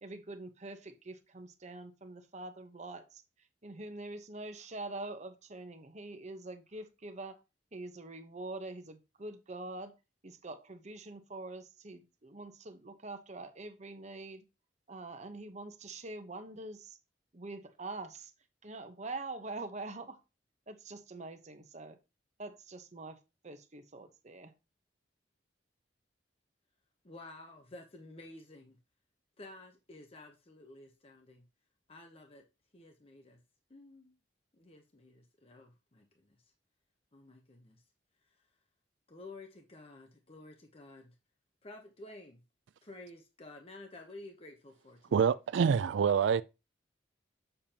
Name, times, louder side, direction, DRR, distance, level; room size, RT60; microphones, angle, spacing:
voice 1, 0.0-3.2 3.6-7.4 7.7-9.9 10.2-14.4 14.9-17.0 17.3-18.3 18.6-20.2 20.7-22.0 22.4-24.5, right 2 dB, 40° right, 1.0 m, -44 dB
voice 2, 27.0-28.8 29.4-31.4 31.9-32.4 32.7-33.4 33.7-34.1 34.5-36.4 37.1-37.8 38.2-38.5 39.1-41.1 41.6-42.4 42.8-45.3, left 2 dB, 30° left, 0.9 m, -52 dB
voice 3, 45.1-46.4, right 7 dB, 85° right, 0.4 m, -26 dB
7.2 x 6.8 x 2.9 m
head